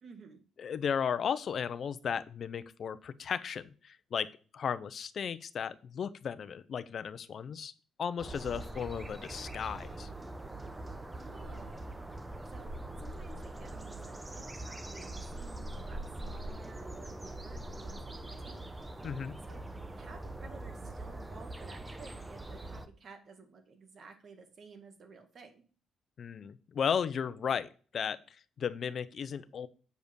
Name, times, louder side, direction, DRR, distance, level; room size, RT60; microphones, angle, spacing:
voice 1, 0.0-0.4 11.1-12.0 12.5-18.6 19.5-19.6 20.0-25.7, right 4 dB, 50° right, 5 dB, 1.8 m, -54 dB
voice 2, 0.6-4.3 4.5-7.7 8.0-10.1 19.0-19.3 26.2-29.7, left 7 dB, 55° left, 14 dB, 0.6 m, -35 dB
sound 1, 8.2-22.9, right 1 dB, 15° right, 0.8 m, -43 dB
8.0 x 5.1 x 5.2 m, 0.39 s
cardioid pair, 90°, 0 cm